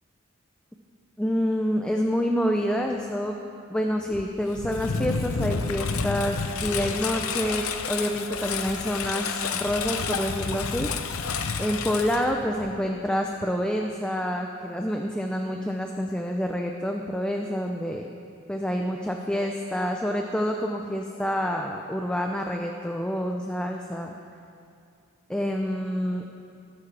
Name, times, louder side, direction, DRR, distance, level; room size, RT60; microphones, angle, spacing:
voice 1, 1.2-3.3 3.7-10.9 11.6-18.1 18.5-24.1 25.3-26.2, equal, 5° left, 2 dB, 0.4 m, -27 dB
Engine, 4.1-12.9, left 5 dB, 80° left, 0.7 m, -30 dB
20.5 x 9.5 x 3.3 m, 2.4 s
head